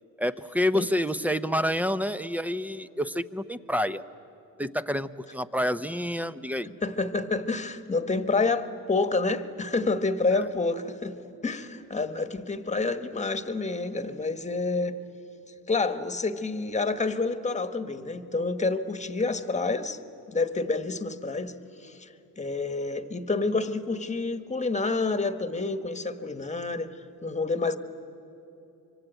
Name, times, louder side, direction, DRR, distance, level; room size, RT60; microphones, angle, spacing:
voice 1, 0.2-4.0 4.6-6.7 10.3-10.4, equal, 5° right, 13 dB, 0.7 m, -28 dB
voice 2, 6.8-11.2 11.4-15.0 15.7-20.0 20.3-21.5 21.8-22.1 22.4-27.8, left 3 dB, 20° left, 10 dB, 1.4 m, -28 dB
25.0 x 24.5 x 9.1 m, 2.9 s
cardioid pair, 105°, 35 cm